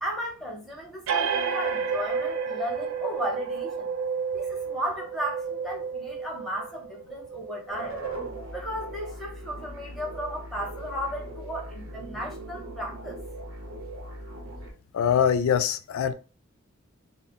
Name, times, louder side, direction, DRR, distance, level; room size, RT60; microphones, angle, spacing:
voice 1, 0.0-3.9 4.3-8.0 8.5-13.2, equal, ahead, 0.7 m, -35 dB
sound 1, 1.1-8.3, right 6 dB, 85° right, 0.4 m, -31 dB
sound 2, 7.7-14.7, right 2 dB, 70° right, 0.8 m, -39 dB
voice 2, 14.9-16.1, left 8 dB, 85° left, 0.3 m, -23 dB
2.0 x 2.0 x 3.5 m
head